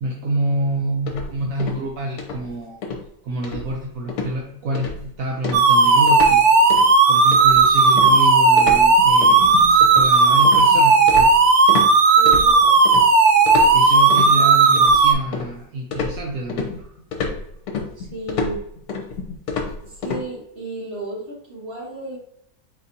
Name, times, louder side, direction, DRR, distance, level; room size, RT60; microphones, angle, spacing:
voice 1, 0.0-2.8 3.2-6.7 7.1-12.0 13.7-16.9, right 1 dB, 65° right, -1 dB, 0.9 m, -27 dB
sound 1, 1.1-1.9 2.2-2.5 2.8-3.1 3.4-3.8 4.1-4.3 4.7-5.1 5.4-6.4 6.7-6.9 7.3-11.9 12.3-13.0 13.5-14.3 14.8-15.6 15.9-20.2, left 4 dB, 65° left, 1.2 m, -29 dB
sound 2, 5.5-15.1, right 4 dB, 90° right, 0.6 m, -14 dB
voice 2, 12.2-12.8 14.3-14.6 18.0-18.6 19.8-22.2, right 2 dB, 35° right, -4 dB, 1.8 m, -33 dB
4.4 x 3.9 x 2.7 m, 0.74 s
omnidirectional pair, 1.9 m